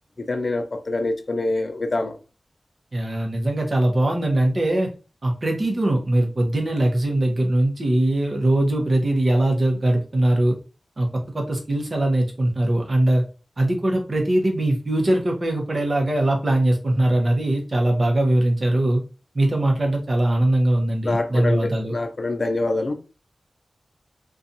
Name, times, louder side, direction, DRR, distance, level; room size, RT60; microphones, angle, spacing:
voice 1, 0.2-2.1 21.0-22.9, left 2 dB, 50° left, 0.4 m, -25 dB
voice 2, 2.9-4.9 5.2-10.6 11.0-11.1 11.3-13.2 13.6-19.0 19.3-21.9, right 1 dB, 45° right, 0.8 m, -21 dB
2.5 x 2.3 x 2.6 m
wide cardioid pair, 100°, 0 cm